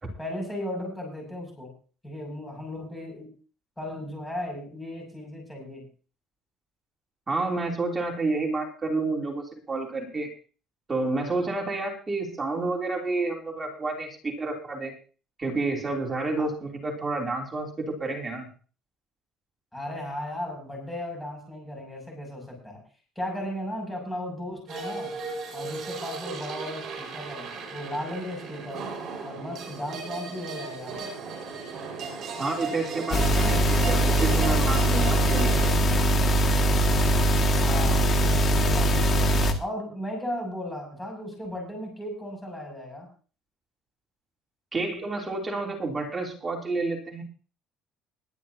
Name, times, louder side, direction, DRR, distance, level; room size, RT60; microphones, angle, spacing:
voice 1, 0.2-1.7 2.0-3.3 3.8-5.8 16.4-16.5 19.7-22.8 23.1-25.2 25.5-28.8 29.2-31.0 37.6-39.3 39.6-43.1, left 1 dB, 5° left, 1 dB, 6.6 m, -36 dB
voice 2, 7.3-10.3 10.9-14.9 15.4-18.5 32.4-35.9 44.7-47.2, right 3 dB, 15° right, 0 dB, 3.2 m, -30 dB
sound 1, 24.7-35.7, right 4 dB, 40° right, 5.1 m, -36 dB
sound 2, 33.1-39.5, right 1 dB, 30° left, 2.0 m, -22 dB
21.0 x 11.0 x 2.8 m, 0.37 s
cardioid pair, 175°, 0 cm